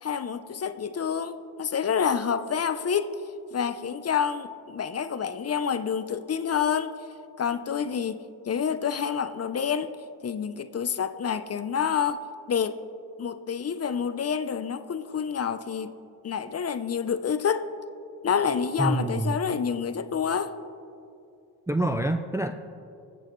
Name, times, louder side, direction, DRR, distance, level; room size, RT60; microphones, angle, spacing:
voice 1, 0.0-3.1 3.5-6.9 7.4-9.9 10.2-12.2 12.5-12.8 13.2-15.9 16.2-17.7 18.2-20.5, left 7 dB, 40° left, 11 dB, 0.6 m, -28 dB
voice 2, 18.8-19.3 21.7-22.5, right 2 dB, 10° right, 7 dB, 0.4 m, -26 dB
24.0 x 8.1 x 3.1 m, 2.6 s
cardioid pair, 90°, 40 cm